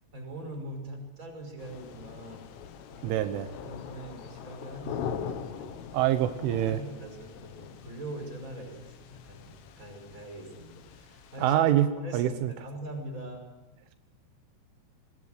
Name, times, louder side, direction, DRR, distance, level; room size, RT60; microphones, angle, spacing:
voice 1, 0.1-2.4 2.9-3.3 3.6-5.9 6.6-11.6 12.0-13.5, right 1 dB, 15° right, 4 dB, 5.3 m, -42 dB
sound 1, 1.6-11.6, left 7 dB, 85° left, 4.1 m, -42 dB
voice 2, 3.0-3.5 5.9-6.8 11.4-11.9 12.1-12.5, right 12 dB, 80° right, 9 dB, 3.4 m, -25 dB
26.5 x 20.5 x 6.6 m, 1.1 s
omnidirectional pair, 5.6 m